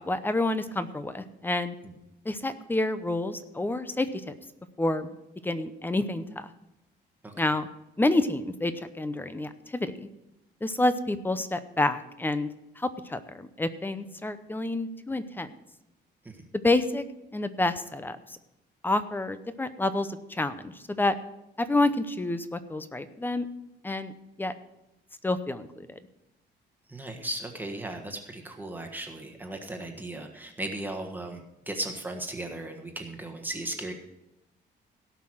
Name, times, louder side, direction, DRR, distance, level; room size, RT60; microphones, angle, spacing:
voice 1, 0.0-1.8 2.2-4.3 4.8-5.2 5.4-6.5 7.4-7.7 8.0-10.1 10.6-12.5 12.8-15.5 16.6-17.0 17.3-18.4 18.8-21.1 21.6-23.5 23.8-24.1 24.4-24.5 25.2-26.0, left 2 dB, 10° left, 12 dB, 0.7 m, -28 dB
voice 2, 26.9-31.4 31.7-33.9, right 1 dB, 10° right, 2 dB, 1.4 m, -36 dB
17.0 x 5.8 x 6.2 m, 0.90 s
cardioid pair, 140°, 18 cm